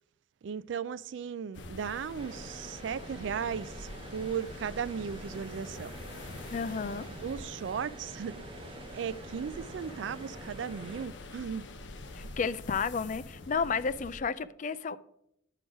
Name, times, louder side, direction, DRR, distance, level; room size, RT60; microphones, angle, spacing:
voice 1, 0.4-5.9 7.2-11.6, right 7 dB, 70° right, 0.3 m, -36 dB
sound 1, 1.5-14.2, left 2 dB, 70° left, 0.8 m, -46 dB
sound 2, 2.2-11.1, right 2 dB, 30° right, 0.8 m, -47 dB
voice 2, 6.5-7.1 12.1-15.0, left 5 dB, 40° left, 0.3 m, -32 dB
9.9 x 3.9 x 6.1 m
head